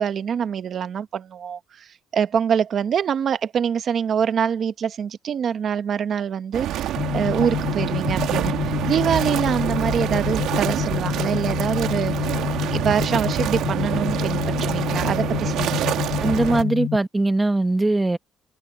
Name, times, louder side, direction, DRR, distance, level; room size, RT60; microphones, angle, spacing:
voice 1, 0.0-12.4 12.7-16.0, right 8 dB, 45° right, 1.0 m, -25 dB
sound 1, 6.5-16.6, right 12 dB, 75° right, 1.6 m, -26 dB
sound 2, 7.0-17.0, left 12 dB, 65° left, 7.4 m, -27 dB
voice 2, 16.2-18.2, right 2 dB, 10° right, 0.9 m, -21 dB
cardioid pair, 155°, 0 cm